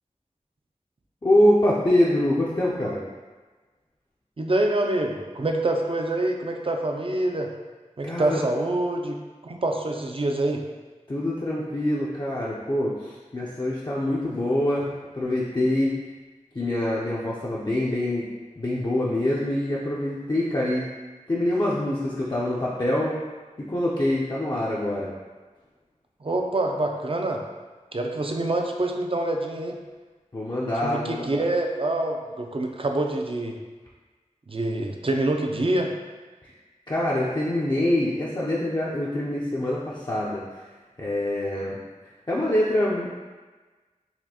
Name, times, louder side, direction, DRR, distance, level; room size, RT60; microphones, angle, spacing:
voice 1, 1.2-3.0 8.0-8.4 11.1-15.9 16.5-18.3 18.6-20.9 21.3-23.2 23.7-25.1 30.3-31.3 36.4-36.5 36.9-40.4 41.0-41.8 42.3-43.1, left 1 dB, 35° left, -7 dB, 0.5 m, -25 dB
voice 2, 4.4-7.5 8.0-9.2 9.4-10.6 26.2-27.4 27.9-29.8 30.8-33.6 34.5-35.9, right 2 dB, 45° right, 2 dB, 0.4 m, -26 dB
4.1 x 2.5 x 2.8 m, 1.3 s
wide cardioid pair, 50°, 13 cm